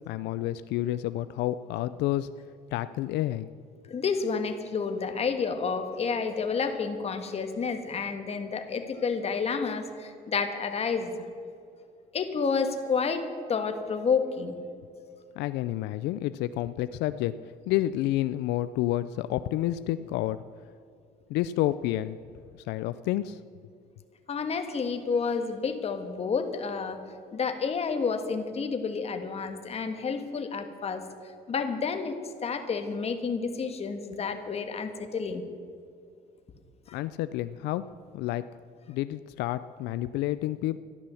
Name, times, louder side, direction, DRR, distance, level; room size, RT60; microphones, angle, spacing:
voice 1, 0.1-2.3 2.7-3.5 15.4-17.3 17.7-20.4 21.3-22.2 22.6-23.4 36.9-37.9 38.1-38.5 38.9-40.8, left 14 dB, 85° left, 13 dB, 0.4 m, -29 dB
voice 2, 3.9-11.1 12.1-14.6 24.3-27.0 27.3-31.0 31.5-35.4, left 5 dB, 35° left, 6 dB, 1.6 m, -30 dB
13.5 x 11.5 x 7.0 m, 2.4 s
cardioid pair, 110°, 17 cm